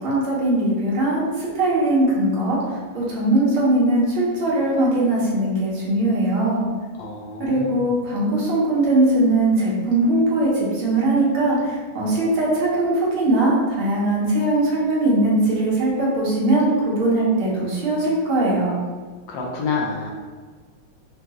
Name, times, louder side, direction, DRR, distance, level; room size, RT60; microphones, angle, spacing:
voice 1, 0.0-2.6 2.9-6.7 7.4-10.5 10.7-11.6 12.0-18.8, right 2 dB, 90° right, -6 dB, 2.0 m, -20 dB
voice 2, 7.0-7.9 19.3-20.1, left 4 dB, 70° left, -1 dB, 1.3 m, -28 dB
5.1 x 2.3 x 2.9 m, 1.5 s
omnidirectional pair, 2.2 m